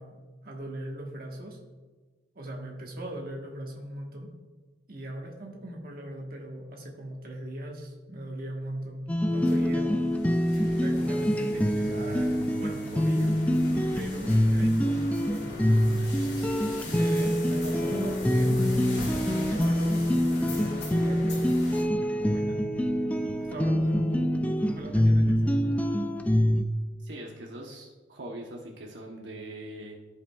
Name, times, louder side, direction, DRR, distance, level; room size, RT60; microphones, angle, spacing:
voice 1, 0.0-1.6 2.3-4.3 4.9-10.1 10.8-13.4 13.9-21.5 22.2-22.7 23.4-25.7, right 1 dB, 55° right, 0 dB, 1.3 m, -39 dB
sound 1, 9.1-26.6, equal, 10° left, 0.4 m, -25 dB
sound 2, 9.3-21.8, left 2 dB, 65° left, 2.5 m, -42 dB
voice 2, 27.0-30.0, right 1 dB, 85° right, -1 dB, 1.0 m, -42 dB
14.0 x 5.1 x 2.4 m, 1.3 s
head